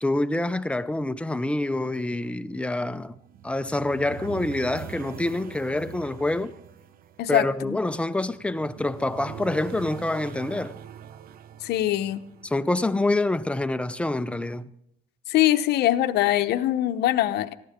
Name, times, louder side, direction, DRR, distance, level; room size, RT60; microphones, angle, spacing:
voice 1, 0.0-3.2 3.4-6.5 7.3-10.8 12.4-14.7, left 2 dB, 5° left, 0.6 m, -26 dB
sound 1, 3.1-13.2, right 9 dB, 60° right, 0.9 m, -43 dB
voice 2, 7.2-7.8 11.6-12.2 15.3-17.5, left 13 dB, 75° left, 0.8 m, -23 dB
19.0 x 14.5 x 3.6 m
cardioid pair, 110°, 17 cm